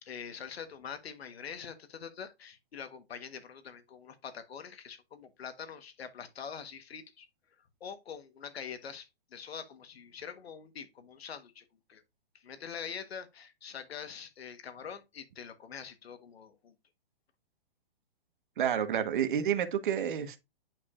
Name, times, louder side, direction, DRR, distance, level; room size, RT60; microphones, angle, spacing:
voice 1, 0.0-7.3 7.8-12.0 12.3-16.7, left 7 dB, 90° left, 1.4 m, -44 dB
voice 2, 18.6-20.4, right 9 dB, 55° right, 1.4 m, -29 dB
9.5 x 4.7 x 2.5 m
hypercardioid pair, 170°, 30 cm